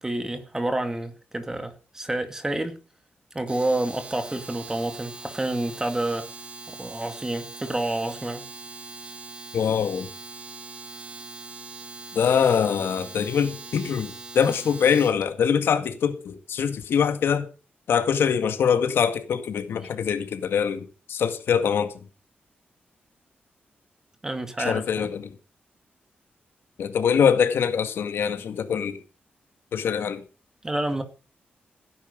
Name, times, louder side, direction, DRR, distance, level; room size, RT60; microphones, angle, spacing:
voice 1, 0.0-2.8 3.3-6.3 6.7-8.5 24.2-25.1 30.6-31.0, right 1 dB, 15° right, 2.1 m, -29 dB
Domestic sounds home sounds, 3.4-15.2, right 3 dB, 30° right, 1.9 m, -41 dB
voice 2, 9.5-10.1 12.1-17.5 17.9-21.9 24.6-25.4 26.8-29.0 29.7-30.2, left 7 dB, 90° left, 1.9 m, -23 dB
16.5 x 10.0 x 5.2 m
wide cardioid pair, 160°, 4 cm